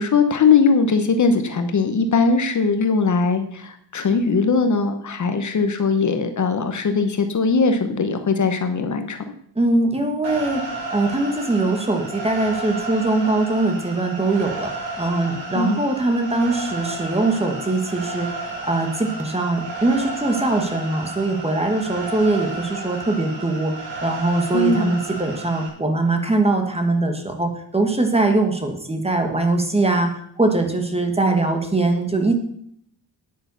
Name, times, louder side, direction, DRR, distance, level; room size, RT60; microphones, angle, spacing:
voice 1, 0.0-9.3 15.5-15.8 24.5-24.9, left 4 dB, 45° left, 8 dB, 1.0 m, -20 dB
voice 2, 9.5-30.1 30.4-32.3, right 2 dB, 15° right, 4 dB, 1.4 m, -22 dB
sound 1, 10.2-25.7, right 3 dB, 70° right, 5.7 m, -32 dB
9.7 x 8.8 x 6.8 m, 0.69 s
wide cardioid pair, 180°, 43 cm